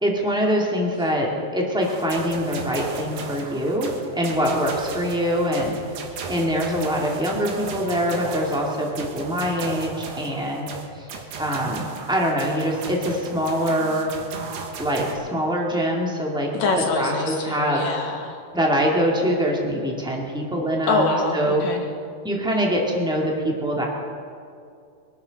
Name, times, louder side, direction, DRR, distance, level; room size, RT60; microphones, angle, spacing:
voice 1, 0.0-5.7 6.3-10.7 11.0-11.1 11.4-14.1 14.8-16.5 17.0-17.8 18.5-21.6 22.2-23.8, equal, 5° right, -2 dB, 0.8 m, -24 dB
sound 1, 1.8-15.1, right 4 dB, 70° right, 3.1 m, -35 dB
voice 2, 16.5-18.4 20.9-21.8, left 3 dB, 55° left, 2 dB, 2.6 m, -24 dB
24.0 x 12.0 x 4.1 m, 2.4 s
omnidirectional pair, 4.2 m